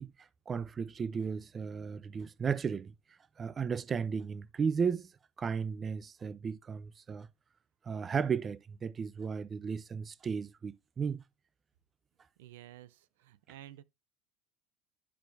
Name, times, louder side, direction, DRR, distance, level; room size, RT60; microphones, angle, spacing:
voice 1, 0.0-2.9 3.4-5.1 5.4-7.3 7.8-11.2, right 6 dB, 30° right, 0.6 m, -35 dB
voice 2, 12.4-13.8, right 13 dB, 80° right, 0.5 m, -52 dB
12.5 x 4.4 x 2.6 m
supercardioid pair, 95°, 0 cm